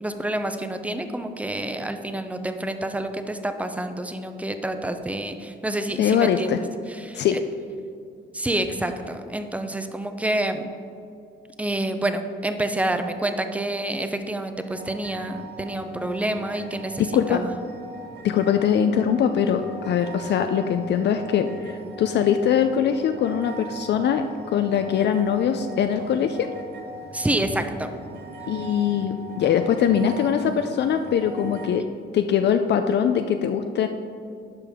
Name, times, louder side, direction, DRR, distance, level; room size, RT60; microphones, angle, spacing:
voice 1, 0.0-6.6 6.9-7.4 8.3-10.8 11.6-17.5 27.1-27.9, right 1 dB, 5° right, 8 dB, 0.6 m, -28 dB
voice 2, 6.0-6.6 7.1-7.4 17.0-17.4 18.2-26.5 28.5-31.8 32.1-33.9, left 8 dB, 60° left, 7 dB, 0.4 m, -22 dB
sound 1, 14.7-31.7, right 1 dB, 55° right, 1.0 m, -41 dB
11.0 x 5.2 x 3.6 m, 2.5 s
cardioid pair, 90°, 20 cm